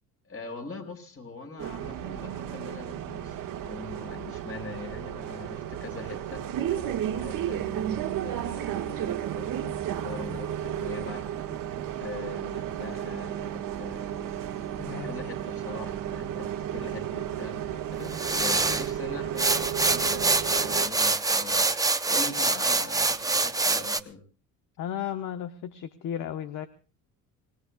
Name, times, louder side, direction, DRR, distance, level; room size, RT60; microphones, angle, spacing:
voice 1, 0.2-11.5 11.8-14.6 14.9-24.2, left 3 dB, 35° left, 4 dB, 5.4 m, -42 dB
Bus, 1.6-20.9, right 11 dB, 60° right, 1.8 m, -33 dB
voice 2, 14.8-15.2 24.8-26.7, left 10 dB, 55° left, 9 dB, 1.1 m, -34 dB
sound 1, 18.1-18.9 19.4-24.0, right 3 dB, 10° right, 0.7 m, -25 dB
26.0 x 19.5 x 2.3 m, 0.35 s
cardioid pair, 100°, 38 cm